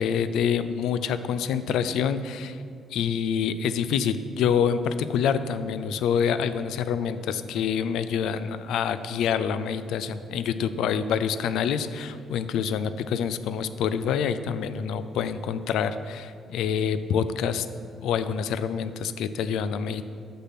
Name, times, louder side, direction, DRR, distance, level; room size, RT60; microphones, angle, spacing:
voice 1, 0.0-2.6 2.9-17.7 18.0-20.0, left 7 dB, 85° left, 12 dB, 0.4 m, -26 dB
6.6 x 6.0 x 5.7 m, 2.3 s
cardioid pair, 90°, 0 cm